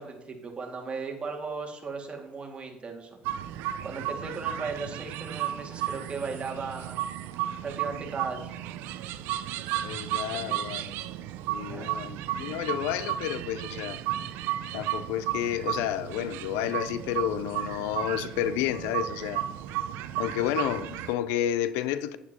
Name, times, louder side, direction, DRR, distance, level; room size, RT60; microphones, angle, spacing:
voice 1, 0.0-3.4 3.8-7.0 7.6-8.7 10.3-10.4 11.7-12.0, right 4 dB, 30° right, 2.1 m, -37 dB
sound 1, 3.2-21.1, right 12 dB, 70° right, 0.5 m, -34 dB
voice 2, 9.8-11.0 11.5-14.0 14.7-19.4 20.2-22.2, left 11 dB, 80° left, 0.5 m, -31 dB
10.5 x 9.1 x 2.9 m
supercardioid pair, 90°, 4 cm